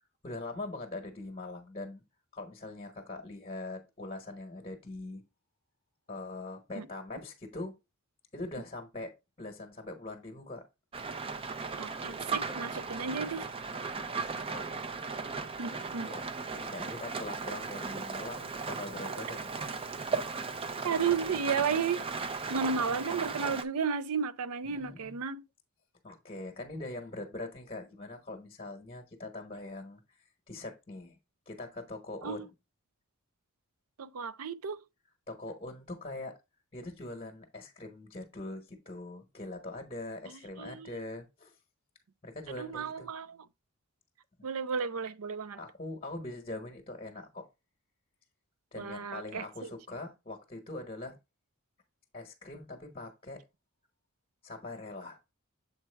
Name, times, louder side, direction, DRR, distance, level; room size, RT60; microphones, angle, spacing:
voice 1, 0.2-2.0 2.3-5.2 6.1-7.7 8.3-10.6 13.9-14.7 16.0-16.3 16.5-19.6 20.3-20.5 24.6-25.2 26.0-30.0 30.5-31.2 31.5-32.5 35.3-36.4 36.7-41.5 42.2-43.1 44.4-44.5 45.6-47.5 48.7-51.2 52.1-53.4 54.4-55.2, left 2 dB, 25° left, 1.1 m, -42 dB
Rain, 10.9-23.6, right 4 dB, 25° right, 0.5 m, -37 dB
voice 2, 11.8-13.5 15.6-16.1 20.8-22.0 22.5-25.4 32.2-32.4 34.0-34.8 40.6-41.0 42.6-43.4 44.4-45.6 48.8-49.7, right 6 dB, 75° right, 0.5 m, -33 dB
7.3 x 4.5 x 3.3 m
head